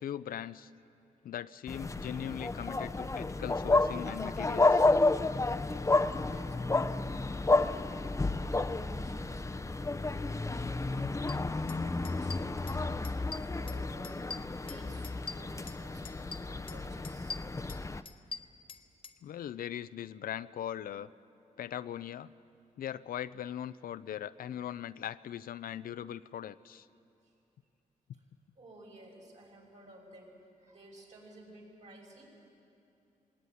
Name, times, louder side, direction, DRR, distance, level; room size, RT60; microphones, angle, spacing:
voice 1, 0.0-0.7 1.2-4.8 19.2-21.1 21.6-22.3 22.8-26.9, left 10 dB, 80° left, 15 dB, 0.5 m, -40 dB
sound 1, 1.7-18.0, left 2 dB, 20° left, 0.6 m, -31 dB
voice 2, 5.8-11.5 11.8-17.4 27.2-27.3 28.1-28.2 28.6-32.3, right 1 dB, 55° right, -1 dB, 6.1 m, -54 dB
sound 2, 11.3-11.4 11.7-11.8 12.0-12.8 13.0-13.8 14.0-15.8 16.1-16.8 17.0-19.2, left 4 dB, 35° left, 1.0 m, -43 dB
19.0 x 18.5 x 9.4 m, 2.7 s
cardioid pair, 70°, 15 cm